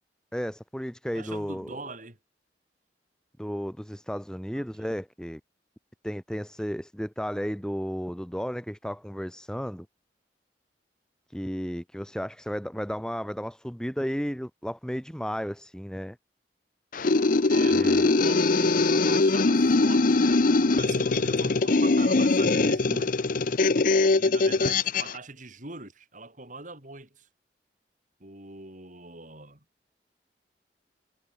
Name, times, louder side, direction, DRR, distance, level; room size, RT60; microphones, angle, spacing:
voice 1, 0.3-1.8 3.4-5.4 6.0-9.9 11.3-16.2 17.7-18.1, equal, 5° left, 2.6 m, -33 dB
voice 2, 1.1-2.2 4.6-4.7 17.5-23.2 24.2-27.3 28.2-29.6, right 3 dB, 45° right, 7.2 m, -42 dB
sound 1, 16.9-25.1, left 3 dB, 50° left, 0.7 m, -22 dB
head